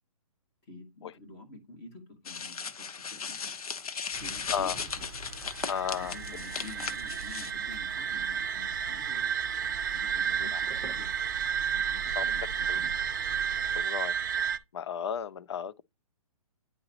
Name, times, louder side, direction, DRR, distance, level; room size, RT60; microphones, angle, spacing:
voice 1, 0.6-3.5 4.2-5.1 5.9-9.6 9.9-11.2 11.7-12.9, left 2 dB, 20° left, 1.4 m, -49 dB
sound 1, 2.2-7.5, left 6 dB, 80° left, 0.9 m, -37 dB
sound 2, 4.1-13.8, right 4 dB, 15° right, 0.8 m, -46 dB
sound 3, 5.5-14.6, right 7 dB, 35° right, 0.5 m, -32 dB
voice 2, 5.7-6.1 10.4-10.6 12.2-12.3 12.7-12.8 13.8-14.1 14.7-15.8, left 8 dB, 50° left, 0.4 m, -33 dB
9.7 x 3.8 x 2.8 m
hypercardioid pair, 170°, 19 cm